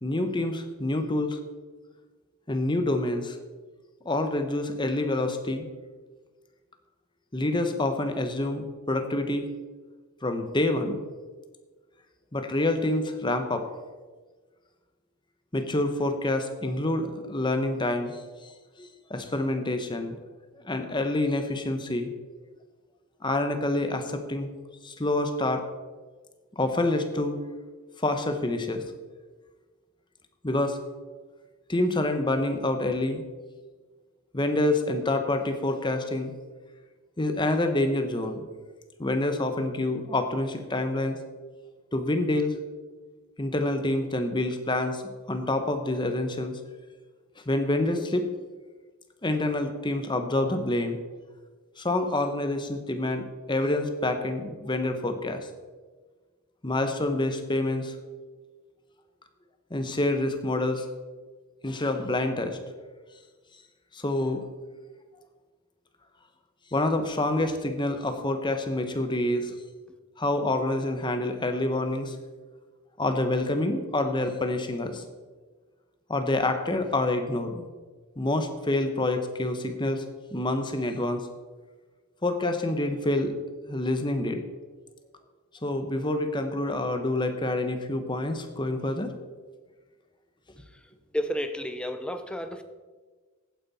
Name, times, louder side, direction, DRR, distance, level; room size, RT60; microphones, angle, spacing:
voice 1, 0.0-1.4 2.5-3.4 4.0-5.7 7.3-9.5 10.2-11.0 12.3-13.7 15.5-18.5 18.8-20.2 20.6-22.1 23.2-24.5 24.8-25.6 26.6-27.4 28.0-28.8 30.4-30.8 31.7-33.2 34.3-36.3 37.2-38.4 39.0-41.2 41.9-42.6 43.4-45.0 45.3-46.6 47.5-48.2 49.2-51.0 51.8-55.4 56.6-57.9 59.7-60.9 61.6-62.6 63.9-64.4 66.7-69.5 70.2-72.2 73.0-75.0 76.1-77.7 78.2-80.0 80.3-81.2 82.2-83.3 83.7-84.4 85.6-89.1, left 2 dB, 20° left, 1.1 m, -27 dB
voice 2, 91.1-92.6, equal, 5° left, 0.6 m, -31 dB
15.5 x 9.3 x 4.3 m
head